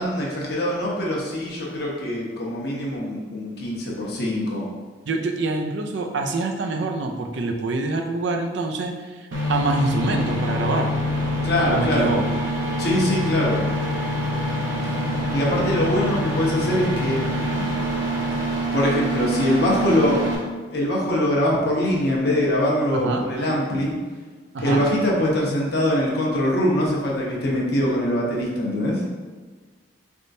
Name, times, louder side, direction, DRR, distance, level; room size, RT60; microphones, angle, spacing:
voice 1, 0.0-4.7 11.4-12.1 12.8-13.6 15.3-17.8 18.7-20.2 20.7-23.9 24.6-29.0, left 1 dB, 55° left, -4 dB, 0.9 m, -23 dB
voice 2, 5.0-10.9 11.7-12.4 22.9-23.2 24.5-24.8, right 3 dB, 70° right, 3 dB, 0.5 m, -26 dB
sound 1, 9.3-20.3, equal, 90° right, 0.8 m, -25 dB
4.2 x 3.5 x 2.6 m, 1.4 s
head